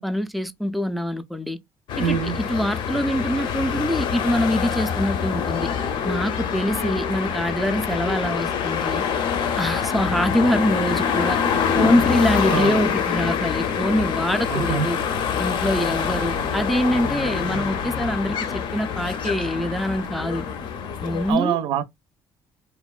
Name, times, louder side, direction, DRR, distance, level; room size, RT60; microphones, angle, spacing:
voice 1, 0.0-1.6 2.0-5.7 6.0-9.0 9.6-11.4 11.7-15.0 15.4-20.5 21.0-21.6, equal, ahead, 0.3 m, -24 dB
sound 1, 1.9-21.3, left 7 dB, 65° left, 0.6 m, -25 dB
voice 2, 2.0-2.4 12.5-12.8 14.5-15.2 21.3-21.8, right 9 dB, 75° right, 0.5 m, -25 dB
2.9 x 2.1 x 2.3 m
cardioid pair, 125°, 9 cm